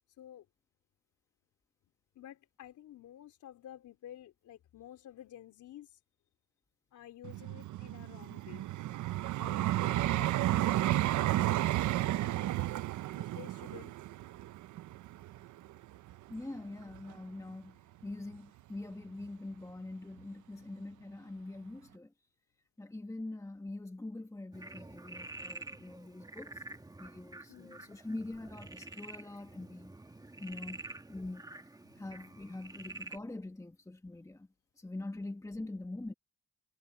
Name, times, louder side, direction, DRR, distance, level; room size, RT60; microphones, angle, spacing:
voice 1, 0.1-0.5 2.2-6.0 6.9-8.7 9.4-11.5 11.9-12.5 13.1-13.9 25.7-25.8 27.5-28.0 31.9-32.0 35.6-35.7, left 11 dB, 75° left, 3.6 m, -52 dB
Vehicle, 7.2-16.3 16.9-17.1, right 15 dB, 75° right, 0.7 m, -32 dB
voice 2, 16.3-22.1 22.8-26.6 27.0-29.9 30.4-31.4 32.0-34.5 34.8-36.1, left 2 dB, 10° left, 1.4 m, -44 dB
Frog, 24.5-33.2, right 2 dB, 10° right, 1.7 m, -48 dB
cardioid pair, 90°, 30 cm